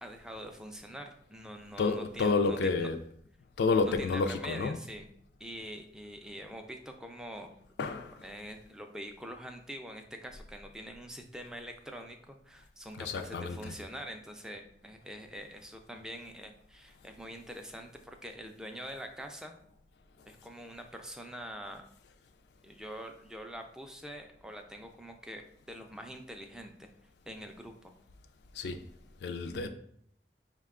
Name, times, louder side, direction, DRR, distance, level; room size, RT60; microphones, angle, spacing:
voice 1, 0.0-2.9 3.8-5.1 5.4-7.5 8.2-19.6 20.3-21.8 22.6-26.9 27.3-27.9, equal, 5° right, 0.3 m, -45 dB
voice 2, 1.8-3.0 3.6-4.8 7.8-8.2 12.9-13.7 28.5-28.9 29.2-29.7, left 4 dB, 75° left, 0.4 m, -30 dB
5.2 x 2.2 x 3.6 m
head